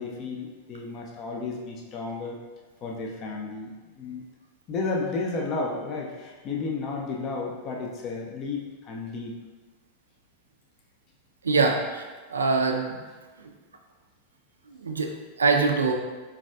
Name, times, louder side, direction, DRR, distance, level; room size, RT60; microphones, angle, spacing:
voice 1, 0.0-2.4 2.8-4.2 4.7-9.3, left 3 dB, 35° left, 0 dB, 0.4 m, -32 dB
voice 2, 11.4-13.0 13.4-13.5 14.7-15.9, right 4 dB, 75° right, 2 dB, 0.3 m, -24 dB
4.0 x 2.3 x 2.2 m, 1.3 s
figure-of-eight pair, 90°, 0 cm